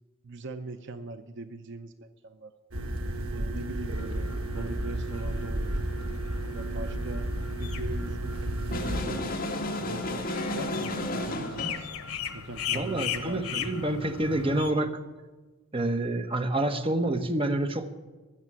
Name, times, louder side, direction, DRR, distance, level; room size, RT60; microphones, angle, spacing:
voice 1, 0.2-2.5 3.3-5.8 6.5-7.3 7.6-8.4 8.6-9.5 9.7-11.9 12.3-13.9, right 3 dB, 55° right, 10 dB, 0.7 m, -40 dB
sound 1, 2.7-9.0, right 1 dB, 85° right, 1.7 m, -32 dB
sound 2, 3.9-14.7, left 7 dB, 85° left, 1.1 m, -39 dB
sound 3, 8.7-11.9, left 1 dB, 40° left, 1.9 m, -32 dB
voice 2, 12.7-15.0 15.7-17.9, right 1 dB, 25° right, 7 dB, 0.9 m, -28 dB
15.0 x 7.0 x 9.6 m, 1.3 s
head